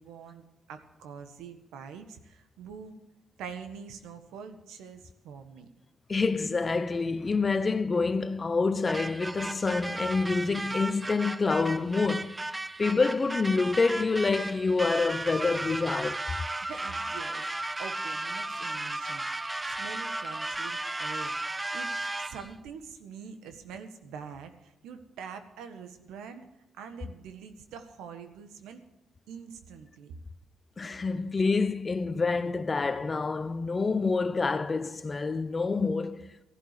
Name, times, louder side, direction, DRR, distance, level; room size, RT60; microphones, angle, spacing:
voice 1, 0.0-3.0 3.4-5.7 16.6-21.4 21.7-21.9 22.2-26.5 26.7-28.8 29.3-30.2, right 6 dB, 85° right, 1.5 m, -45 dB
voice 2, 6.1-12.4 12.8-16.2 30.8-36.3, left 4 dB, 30° left, 0.8 m, -27 dB
sound 1, 8.9-22.5, right 2 dB, 15° right, 0.5 m, -35 dB
15.5 x 11.5 x 6.8 m
cardioid pair, 90°, 0 cm